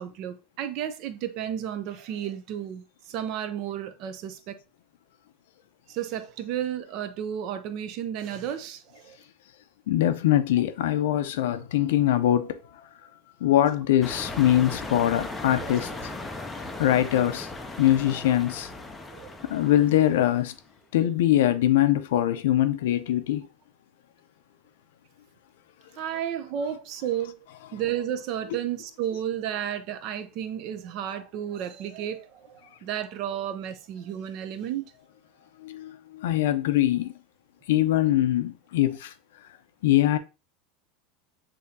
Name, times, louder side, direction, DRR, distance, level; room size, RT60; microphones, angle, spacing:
voice 1, 0.0-4.6 5.9-9.2 15.6-15.8 19.1-19.4 26.0-27.4 27.7-34.9, right 10 dB, 45° right, 0.5 m, -32 dB
voice 2, 9.9-12.6 13.4-15.9 16.8-17.5 17.8-18.7 19.5-20.5 20.9-23.5 35.6-37.1 37.7-39.1 39.8-40.2, left 12 dB, 90° left, 0.5 m, -22 dB
sound 1, 14.0-20.6, left 2 dB, 10° left, 0.4 m, -37 dB
6.8 x 2.8 x 2.7 m
supercardioid pair, 170°, 0 cm